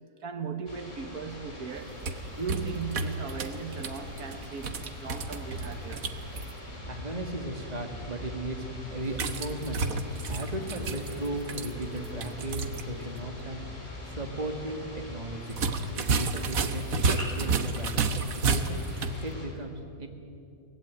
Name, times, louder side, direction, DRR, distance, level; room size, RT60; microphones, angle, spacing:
voice 1, 0.0-2.1 2.3-6.1 16.1-16.4, right 5 dB, 90° right, 1.9 m, -38 dB
sound 1, 0.7-19.5, left 2 dB, 55° left, 4.4 m, -42 dB
sound 2, 1.8-6.5 9.1-12.9 13.2-13.3 15.5-19.2, right 4 dB, 70° right, 1.6 m, -31 dB
voice 2, 6.9-9.8 10.2-13.7 14.0-15.6 16.0-20.1, right 1 dB, 30° right, 2.2 m, -36 dB
24.0 x 18.0 x 9.3 m
omnidirectional pair, 1.5 m